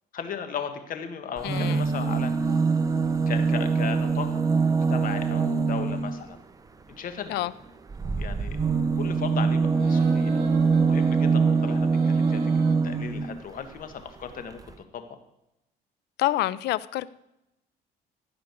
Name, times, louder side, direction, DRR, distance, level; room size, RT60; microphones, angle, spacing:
voice 1, 0.1-2.3 3.3-4.3 4.6-6.4 7.0-7.5 8.2-8.6 9.0-12.5 12.8-14.6 14.9-15.1, left 7 dB, 55° left, 8 dB, 1.6 m, -36 dB
voice 2, 1.4-1.8 7.3-7.5 16.2-17.1, left 15 dB, 80° left, 18 dB, 0.6 m, -27 dB
sound 1, 1.4-6.2 7.9-13.4 14.3-14.4 14.6-14.7, right 4 dB, 20° right, 0.8 m, -24 dB
sound 2, 9.7-12.7, right 6 dB, 75° right, 2.2 m, -41 dB
15.5 x 5.1 x 8.2 m, 0.87 s
cardioid pair, 110°, 17 cm